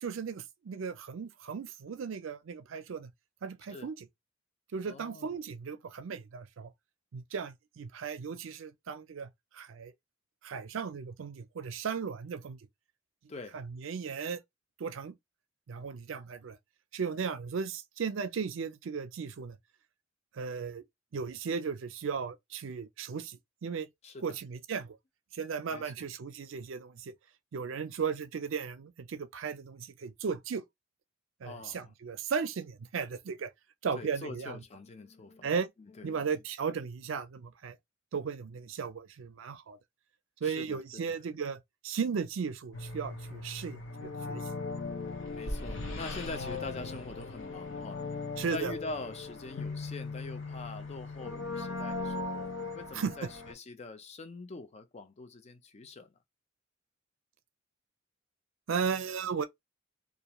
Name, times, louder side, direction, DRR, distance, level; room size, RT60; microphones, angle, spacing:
voice 1, 0.0-3.1 3.4-4.1 4.7-6.7 7.1-9.3 9.5-9.9 10.4-12.6 13.5-14.4 14.8-15.1 15.7-16.6 16.9-19.6 20.3-20.8 21.1-23.9 24.2-25.0 25.3-27.1 27.5-30.6 31.4-33.5 33.8-34.6 35.4-35.7 36.0-37.8 38.1-39.8 40.4-44.4 48.4-48.7 52.9-53.1 58.7-59.5, right 6 dB, 75° right, 0.5 m, -36 dB
voice 2, 4.8-5.3 13.3-13.6 24.0-24.4 25.7-26.1 31.4-31.9 33.9-35.5 35.8-36.3 40.4-41.2 45.3-48.0 48.5-56.1, left 3 dB, 35° left, 0.5 m, -44 dB
sound 1, 42.7-53.5, left 3 dB, 70° left, 0.8 m, -38 dB
2.5 x 2.3 x 2.9 m
head